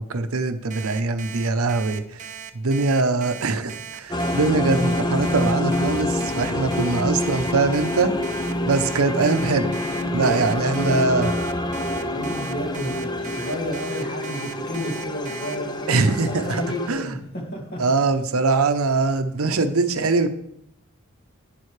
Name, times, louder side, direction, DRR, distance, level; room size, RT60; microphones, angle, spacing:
voice 1, 0.0-2.3 2.5-8.1 8.7-9.7 10.1-11.3 15.9-16.6 16.9-17.2 17.8-20.3, right 3 dB, 70° right, 9 dB, 0.7 m, -22 dB
Alarm, 0.7-15.6, right 7 dB, 35° right, 0.6 m, -38 dB
sound 1, 4.1-16.9, left 1 dB, 20° left, 0.6 m, -27 dB
voice 2, 10.1-11.4 12.1-17.8, equal, 45° left, 0 dB, 2.3 m, -31 dB
11.0 x 9.2 x 3.3 m, 0.74 s
head